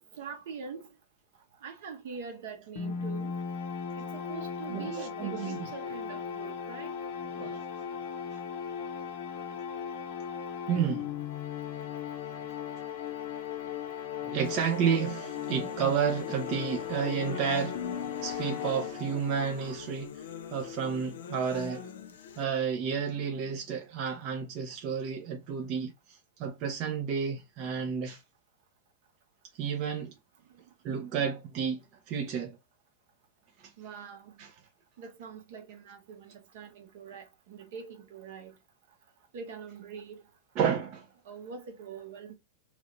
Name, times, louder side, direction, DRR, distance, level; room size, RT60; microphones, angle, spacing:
voice 1, 0.2-0.9 1.6-3.4 3.9-7.0 30.5-30.7 33.8-34.4 35.0-38.6 39.3-40.3 41.2-42.3, right 6 dB, 60° right, 1.0 m, -44 dB
sound 1, 2.8-19.5, left 7 dB, 50° left, 0.9 m, -37 dB
voice 2, 4.7-5.7 7.3-7.6 8.3-8.4 9.5-9.6 10.7-11.1 14.2-20.2 20.5-21.9 22.4-28.2 29.6-30.1 30.8-32.6 33.6-33.7 34.4-34.5 40.6-41.1, right 7 dB, 35° right, 0.7 m, -31 dB
sound 2, 14.4-22.4, left 8 dB, 90° left, 0.6 m, -43 dB
3.1 x 2.5 x 3.1 m
supercardioid pair, 165°, 0 cm